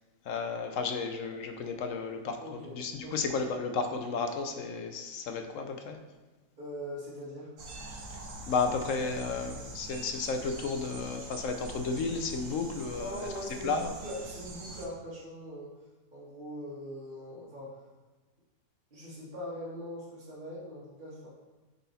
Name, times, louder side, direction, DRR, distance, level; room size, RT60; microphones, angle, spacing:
voice 1, 0.3-6.0 8.5-13.3 13.6-13.9, left 4 dB, 65° left, 6 dB, 0.9 m, -33 dB
voice 2, 2.4-2.7 3.0-3.2 6.6-7.5 12.9-15.7 16.1-17.8 18.9-21.3, equal, 35° right, -8 dB, 1.4 m, -41 dB
sound 1, 7.6-14.9, right 2 dB, 85° right, 1.6 m, -44 dB
7.6 x 4.1 x 4.1 m, 1.2 s
omnidirectional pair, 1.6 m